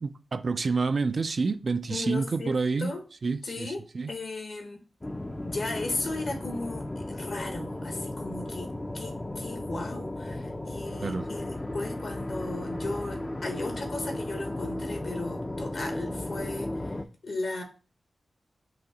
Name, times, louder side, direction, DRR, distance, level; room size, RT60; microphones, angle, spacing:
voice 1, 0.0-2.9 3.2-4.1 11.0-11.3, right 4 dB, 60° right, 0.4 m, -28 dB
voice 2, 1.9-2.5 2.8-3.0 3.4-4.8 5.4-8.7 8.9-17.0 17.2-17.6, left 2 dB, 70° left, 1.3 m, -36 dB
sound 1, 5.0-17.0, left 1 dB, 25° left, 0.5 m, -35 dB
4.8 x 2.9 x 3.9 m
cardioid pair, 55°, 0 cm